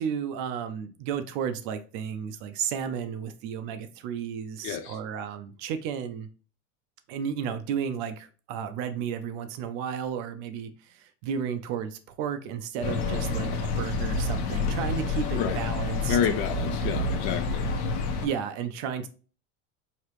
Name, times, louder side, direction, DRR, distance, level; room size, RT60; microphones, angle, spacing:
voice 1, 0.0-6.3 7.1-16.2 18.2-19.1, right 7 dB, 45° right, 0.4 m, -33 dB
voice 2, 4.6-5.0 15.4-15.6 16.1-17.8, left 8 dB, 40° left, 0.4 m, -29 dB
sound 1, 12.8-18.3, left 3 dB, 60° left, 1.0 m, -28 dB
4.8 x 2.9 x 3.0 m
cardioid pair, 175°, 37 cm